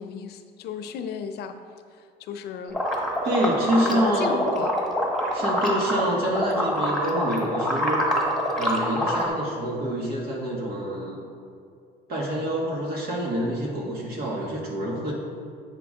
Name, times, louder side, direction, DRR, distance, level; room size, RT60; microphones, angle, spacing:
voice 1, 0.0-1.6 1.9-2.8 3.9-4.7 5.4-5.6, left 7 dB, 75° left, 7 dB, 0.6 m, -33 dB
sound 1, 2.7-6.1 6.3-9.3, equal, ahead, 1.3 m, -25 dB
voice 2, 3.2-4.5 5.3-8.0 8.6-11.3 12.1-15.1, right 1 dB, 65° right, -2 dB, 1.7 m, -27 dB
8.0 x 6.0 x 3.7 m, 2.3 s
cardioid pair, 110°, 17 cm